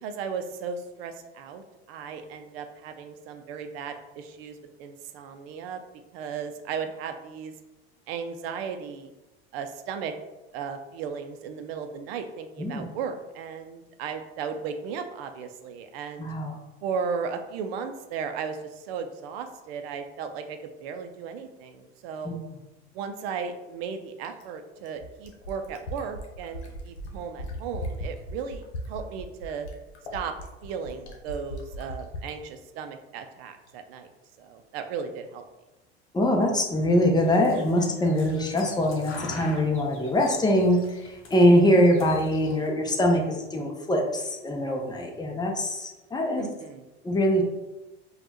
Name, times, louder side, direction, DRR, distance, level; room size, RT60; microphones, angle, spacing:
voice 1, 0.0-5.8 6.1-7.5 8.1-9.1 9.5-10.1 10.5-16.3 16.8-22.4 22.9-29.7 30.1-30.3 30.6-34.1 34.4-35.4 46.4-46.9, right 6 dB, 65° right, 7 dB, 0.6 m, -35 dB
voice 2, 16.2-16.6 22.2-22.4 36.1-46.5 47.0-47.4, equal, 10° left, 1 dB, 0.8 m, -23 dB
Fill (with liquid), 24.2-32.4 33.7-33.8, equal, 80° left, 0.9 m, -37 dB
sound 1, 37.1-42.7, left 3 dB, 40° left, 0.9 m, -45 dB
5.1 x 2.4 x 2.9 m, 1.0 s
hypercardioid pair, 80°, 33 cm